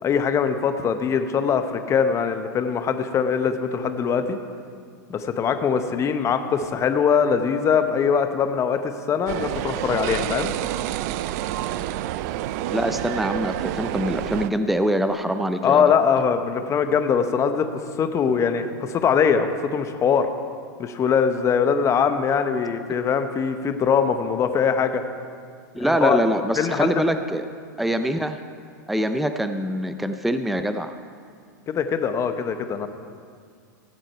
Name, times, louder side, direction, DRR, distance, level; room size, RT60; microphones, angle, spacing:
voice 1, 0.0-4.4 5.1-10.5 15.6-20.3 20.8-25.0 25.8-26.2 26.6-27.1 31.7-32.9, left 6 dB, 30° left, 8 dB, 0.9 m, -22 dB
sound 1, 9.3-14.5, right 13 dB, 55° right, 0.4 m, -28 dB
voice 2, 12.7-16.0 25.8-27.5 27.8-28.4 28.9-30.9, equal, ahead, 8 dB, 0.5 m, -24 dB
16.5 x 7.7 x 4.5 m, 2.2 s
hypercardioid pair, 105°, 10 cm